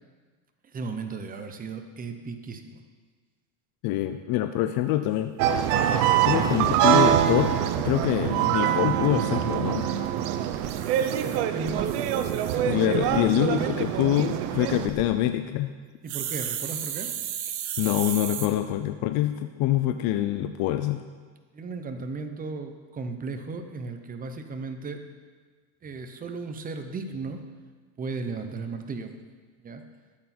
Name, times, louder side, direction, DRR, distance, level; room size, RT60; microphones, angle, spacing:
voice 1, 0.7-2.8 11.1-13.7 16.0-17.1 21.5-25.0 25.8-27.4 28.0-29.2 29.6-29.8, right 4 dB, 20° right, 6 dB, 0.8 m, -35 dB
voice 2, 3.8-5.3 6.2-9.9 12.6-15.8 17.8-21.0, left 13 dB, 55° left, 9 dB, 0.6 m, -25 dB
sound 1, 5.4-14.9, right 10 dB, 90° right, 0.9 m, -24 dB
sound 2, 7.1-8.1 10.4-12.6 13.0-13.2 14.6-15.0 16.1-18.5, right 9 dB, 60° right, 1.2 m, -35 dB
13.0 x 8.1 x 4.3 m, 1.5 s
cardioid pair, 140°, 45 cm